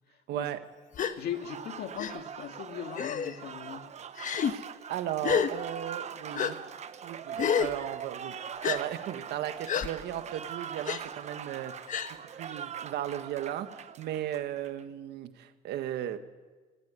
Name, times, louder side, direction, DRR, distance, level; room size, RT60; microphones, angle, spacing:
voice 1, 0.3-0.6 4.3-6.6 7.0-8.3 8.6-12.0 12.3-16.2, right 11 dB, 75° right, 1.7 m, -36 dB
Gasp, 0.9-1.1 2.0-2.1 3.0-3.4 4.2-4.5 5.2-5.5 6.3-6.5 7.4-7.7 8.6-8.8 9.7-9.9 10.9-11.0 11.9-12.1, left 8 dB, 50° left, 1.3 m, -28 dB
voice 2, 1.2-3.9, left 9 dB, 70° left, 2.0 m, -39 dB
Applause, 1.2-14.8, right 8 dB, 40° right, 1.0 m, -42 dB
18.5 x 17.5 x 8.3 m
cardioid pair, 110°, 17 cm